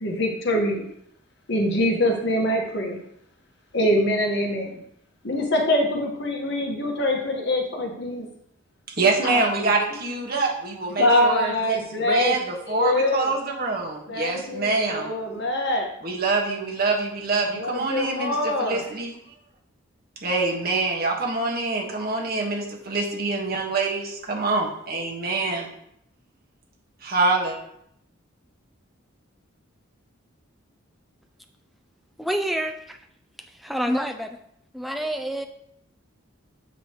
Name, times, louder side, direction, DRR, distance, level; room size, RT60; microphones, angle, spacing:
voice 1, 0.0-0.9 1.5-3.0 3.7-4.8 5.2-8.3 9.2-9.7 11.0-12.4 12.7-13.3 14.1-15.9 17.5-18.9, left 1 dB, 55° left, 1 dB, 1.4 m, -24 dB
voice 2, 9.0-15.1 16.0-19.1 20.2-25.7 27.0-27.5, right 3 dB, 45° right, -1 dB, 1.5 m, -25 dB
voice 3, 32.2-33.0 33.6-34.4 34.7-35.5, equal, ahead, 4 dB, 0.5 m, -27 dB
8.1 x 5.3 x 3.1 m, 0.74 s
head